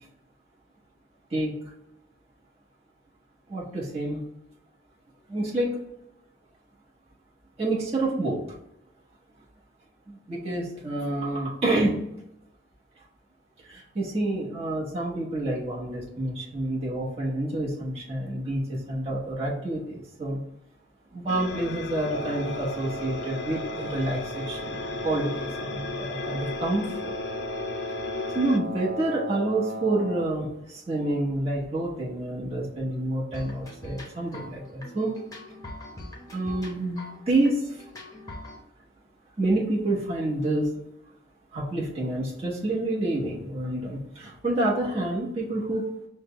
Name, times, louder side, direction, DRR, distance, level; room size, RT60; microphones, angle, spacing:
voice 1, 3.5-4.2 5.3-5.8 7.6-8.4 10.1-12.1 13.6-20.4 21.1-27.2 28.3-35.2 36.3-37.8 39.4-40.7 41.5-46.1, right 1 dB, 35° right, -7 dB, 1.1 m, -28 dB
sound 1, 21.3-28.6, left 5 dB, 60° left, 0.4 m, -36 dB
Wind instrument woodwind instrument, 22.0-30.3, right 1 dB, 55° right, 0.4 m, -36 dB
sound 2, 33.3-38.6, left 1 dB, 20° left, 0.8 m, -43 dB
5.6 x 2.2 x 3.0 m, 0.83 s
head